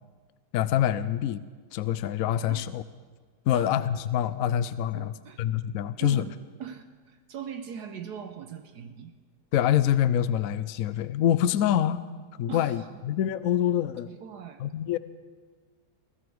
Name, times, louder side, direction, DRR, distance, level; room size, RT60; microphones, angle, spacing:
voice 1, 0.5-1.4 1.7-2.8 3.5-6.2 9.5-12.0 12.4-14.1 14.6-15.0, left 11 dB, 75° left, 14 dB, 0.7 m, -25 dB
voice 2, 5.0-5.4 6.0-9.1 12.5-12.8 14.1-14.6, right 8 dB, 65° right, 8 dB, 1.2 m, -41 dB
20.5 x 14.5 x 4.7 m, 1.5 s
omnidirectional pair, 2.0 m